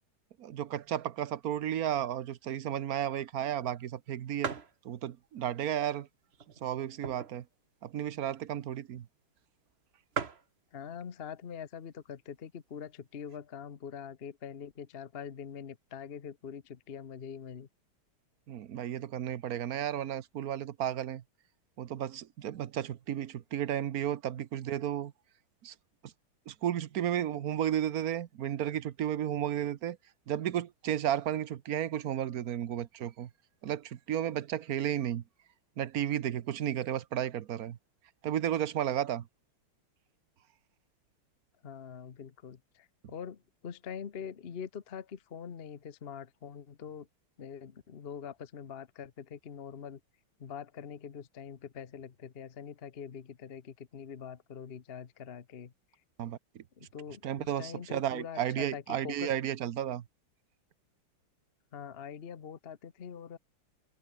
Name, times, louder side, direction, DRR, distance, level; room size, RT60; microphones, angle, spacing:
voice 1, 0.4-4.6 4.8-6.1 6.6-7.4 7.8-9.0 18.5-21.2 21.8-25.1 25.6-25.7 26.5-30.0 30.3-33.3 33.6-35.2 35.8-37.8 38.2-39.3 56.2-56.6 57.2-60.0, right 10 dB, 60° right, 1.0 m, -33 dB
sound 1, 3.4-3.5 3.9-4.0 4.4-4.8 5.4-5.5 6.3-7.5 7.9-8.0 8.1-8.4 9.2-9.3 9.5-9.6 9.8-9.9 10.1-10.5 11.4-11.8 12.3-12.4 12.6-13.4, right 5 dB, 35° right, 1.4 m, -38 dB
voice 2, 10.7-17.7 41.6-47.1 47.4-50.0 50.4-55.7 56.8-59.3 61.7-63.4, left 7 dB, 40° left, 0.9 m, -44 dB
omnidirectional pair, 2.4 m